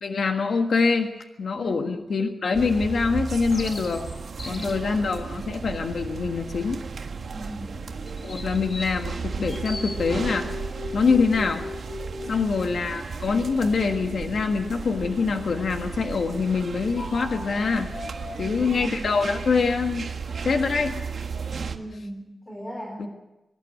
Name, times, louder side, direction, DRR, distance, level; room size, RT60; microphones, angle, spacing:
voice 1, 0.0-1.1 1.4-4.1 4.5-6.8 8.2-10.5 10.9-11.7 12.3-17.9 18.4-20.1 20.4-21.0 23.0-23.1, left 4 dB, 75° left, 4 dB, 1.5 m, -24 dB
voice 2, 1.5-2.0 4.4-5.2 7.3-7.8 12.2-12.8 18.3-19.3 21.5-23.1, right 1 dB, 15° left, 0 dB, 3.9 m, -39 dB
sound 1, 2.5-21.8, right 5 dB, 70° right, 1.6 m, -35 dB
sound 2, 3.5-4.9 8.1-10.0, left 2 dB, 40° left, 2.5 m, -39 dB
sound 3, 7.4-8.7 9.5-12.4 12.9-16.3 17.0-18.4, left 3 dB, 60° left, 5.9 m, -41 dB
25.0 x 12.0 x 9.4 m, 0.98 s
wide cardioid pair, 160°, 0 cm